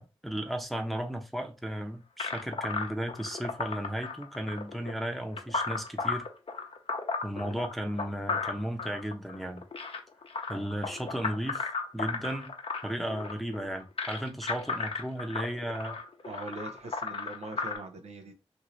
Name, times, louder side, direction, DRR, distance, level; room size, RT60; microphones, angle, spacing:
voice 1, 0.0-6.2 7.2-9.6 10.5-11.7 11.9-12.5 12.8-16.0, right 1 dB, ahead, 0.7 m, -35 dB
sound 1, 2.2-17.8, left 4 dB, 60° left, 0.6 m, -35 dB
voice 2, 16.2-18.3, right 2 dB, 90° right, 0.6 m, -42 dB
2.7 x 2.6 x 3.0 m
cardioid pair, 50°, 11 cm